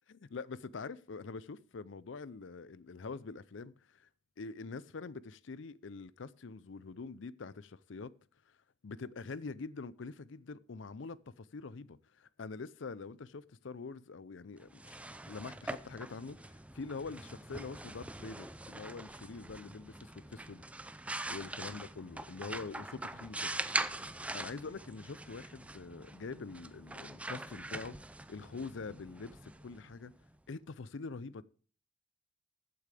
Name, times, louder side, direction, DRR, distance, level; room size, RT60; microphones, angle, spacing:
voice 1, 0.1-4.1 4.4-8.1 8.8-15.0 15.3-20.6 21.3-23.6 24.3-28.0 28.3-30.1 30.5-31.4, left 4 dB, 70° left, 0.5 m, -45 dB
sound 1, 14.6-30.3, right 2 dB, 5° right, 0.4 m, -43 dB
15.0 x 8.6 x 3.3 m
head